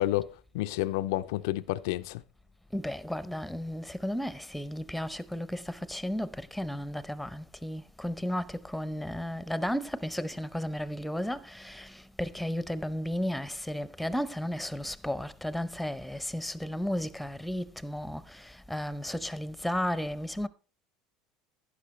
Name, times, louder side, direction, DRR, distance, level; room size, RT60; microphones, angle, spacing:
voice 1, 0.0-2.2, left 16 dB, 75° left, 0.4 m, -30 dB
voice 2, 2.7-20.5, equal, ahead, 0.7 m, -34 dB
11.5 x 9.8 x 3.2 m
hypercardioid pair, 85°, 2 cm